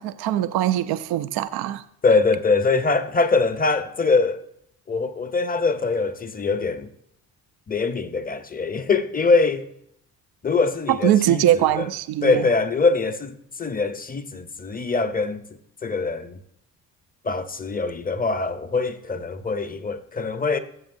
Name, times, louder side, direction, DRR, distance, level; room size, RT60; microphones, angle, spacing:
voice 1, 0.0-1.8 11.0-12.5, right 12 dB, 80° right, 0.6 m, -22 dB
voice 2, 2.0-4.4 4.9-6.9 7.7-9.7 10.4-11.8 12.2-15.4 15.8-16.4 17.2-20.6, left 4 dB, 25° left, 0.9 m, -23 dB
15.5 x 7.2 x 2.6 m
supercardioid pair, 65°, 38 cm